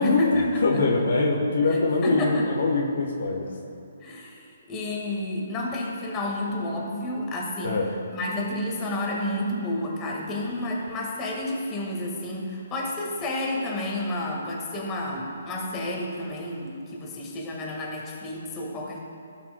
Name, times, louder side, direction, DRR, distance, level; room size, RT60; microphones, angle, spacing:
voice 1, 0.0-0.4 0.7-0.8 2.0-2.5 4.0-7.8 8.1-19.0, left 1 dB, 20° left, -2 dB, 1.7 m, -30 dB
voice 2, 0.6-3.5 7.6-7.9, left 3 dB, 70° left, 0 dB, 1.2 m, -23 dB
16.0 x 5.9 x 2.2 m, 2.5 s
figure-of-eight pair, 140°, 0 cm